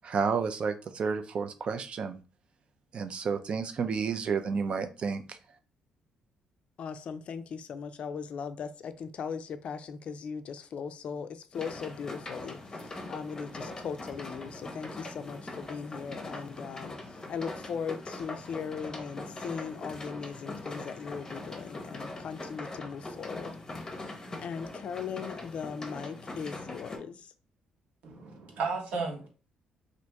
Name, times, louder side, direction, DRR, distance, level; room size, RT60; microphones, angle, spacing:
voice 1, 0.0-2.2 2.9-5.4, right 5 dB, 45° right, 0.4 m, -31 dB
voice 2, 6.8-23.5 24.4-27.3, left 6 dB, 55° left, 0.3 m, -39 dB
sound 1, 11.5-27.0, left 2 dB, 25° left, 0.7 m, -42 dB
voice 3, 28.0-29.3, right 4 dB, 70° right, 1.1 m, -34 dB
2.8 x 2.5 x 3.4 m
cardioid pair, 100°, 2 cm